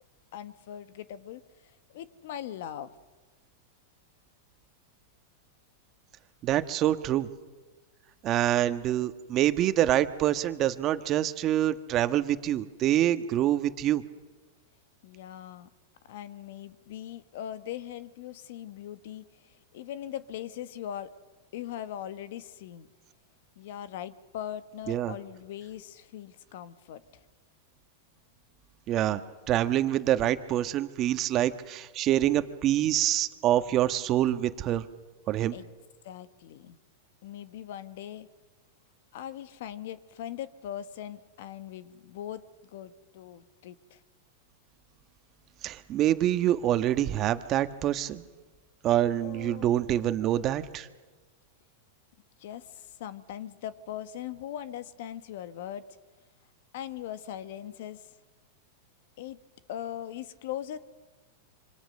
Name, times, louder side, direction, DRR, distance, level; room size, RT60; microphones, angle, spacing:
voice 1, 0.3-2.9 15.0-15.7 16.1-21.1 21.5-22.9 23.6-27.0 35.5-35.7 36.0-36.8 37.2-38.3 39.1-44.0 49.2-49.9 52.4-55.9 56.7-58.1 59.2-59.4 59.7-60.8, left 11 dB, 65° left, 13 dB, 1.4 m, -40 dB
voice 2, 6.4-7.3 8.2-14.0 24.9-25.1 28.9-29.2 29.5-34.8 35.3-35.5 45.6-48.2 48.8-50.9, right 12 dB, 35° right, 11 dB, 1.3 m, -26 dB
26.5 x 25.0 x 6.6 m, 1.3 s
hypercardioid pair, 125°, 0 cm